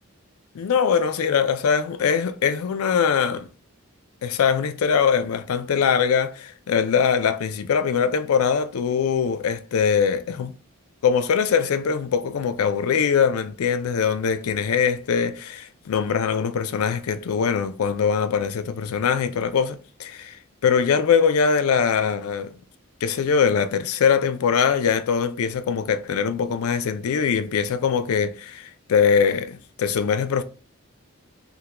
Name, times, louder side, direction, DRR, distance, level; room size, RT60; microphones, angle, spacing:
voice 1, 0.5-3.5 4.2-10.5 11.0-20.4 20.6-22.5 23.0-30.4, left 6 dB, 90° left, 0.4 m, -22 dB
3.5 x 2.2 x 2.9 m
head